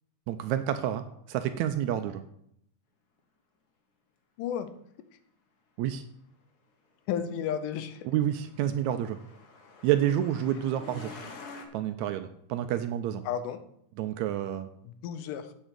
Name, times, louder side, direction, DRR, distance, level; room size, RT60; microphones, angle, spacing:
voice 1, 0.3-2.2 5.8-6.0 8.1-9.2 9.8-11.2 11.7-13.2 14.0-14.7, right 11 dB, 80° right, 9 dB, 1.7 m, -29 dB
voice 2, 4.4-4.7 7.1-8.1 13.2-13.6 14.8-15.5, left 8 dB, 90° left, 11 dB, 2.4 m, -33 dB
Truck, 7.7-11.7, left 3 dB, 75° left, 0.9 m, -47 dB
8.1 x 6.2 x 6.7 m, 0.72 s
omnidirectional pair, 3.6 m